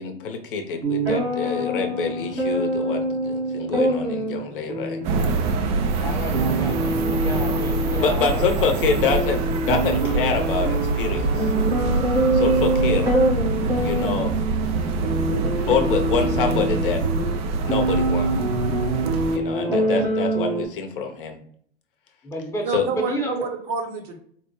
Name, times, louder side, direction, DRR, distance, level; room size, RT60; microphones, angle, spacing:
voice 1, 0.0-5.0 8.0-11.5 12.3-13.2 13.8-14.3 15.7-17.0 17.6-18.3 19.3-21.4 22.7-22.9, left 5 dB, 60° left, 5 dB, 0.8 m, -26 dB
sound 1, 0.8-20.6, right 2 dB, 85° right, 1.1 m, -25 dB
sound 2, 5.0-19.4, right 3 dB, 25° right, 0.3 m, -25 dB
voice 2, 5.9-9.2 12.4-12.6 19.6-20.1 22.2-23.5, equal, 10° left, 1 dB, 0.8 m, -32 dB
voice 3, 22.6-24.2, right 5 dB, 40° right, 3 dB, 0.7 m, -28 dB
4.2 x 2.1 x 3.0 m, 0.62 s
figure-of-eight pair, 100°, 31 cm